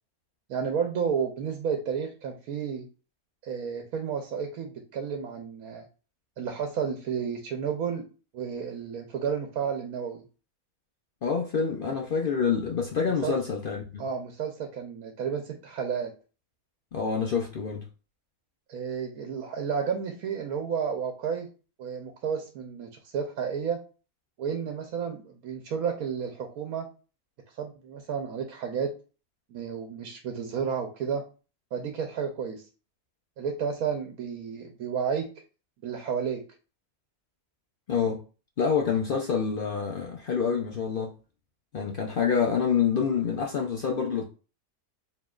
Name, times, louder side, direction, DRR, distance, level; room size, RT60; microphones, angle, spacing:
voice 1, 0.5-2.9 3.4-5.8 6.4-8.1 8.3-10.2 13.0-13.4 14.0-16.1 18.7-21.5 21.8-23.8 24.4-26.9 27.6-28.9 29.5-31.2 31.7-32.6 33.4-35.3 35.8-36.4, right 7 dB, 80° right, 1.2 m, -31 dB
voice 2, 11.2-14.0 16.9-17.8 37.9-38.2 38.6-41.1 41.7-44.3, left 6 dB, 55° left, 0.6 m, -27 dB
4.9 x 3.0 x 2.4 m
omnidirectional pair, 1.5 m